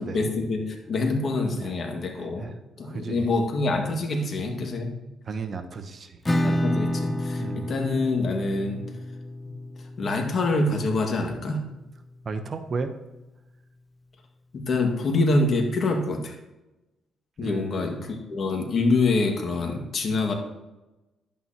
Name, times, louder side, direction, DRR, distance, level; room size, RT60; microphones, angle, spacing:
voice 1, 0.0-2.5 2.8-4.9 6.4-8.9 10.0-11.6 14.5-16.4 17.4-20.3, left 2 dB, 50° left, 2 dB, 1.8 m, -26 dB
voice 2, 2.1-2.5 2.8-3.3 5.3-6.2 7.4-7.7 12.2-12.9 17.4-18.1, right 4 dB, 45° right, 8 dB, 0.8 m, -34 dB
Acoustic guitar / Strum, 6.2-11.7, left 1 dB, 20° left, 0.7 m, -30 dB
11.0 x 8.7 x 2.9 m, 1.0 s
cardioid pair, 90°, 0 cm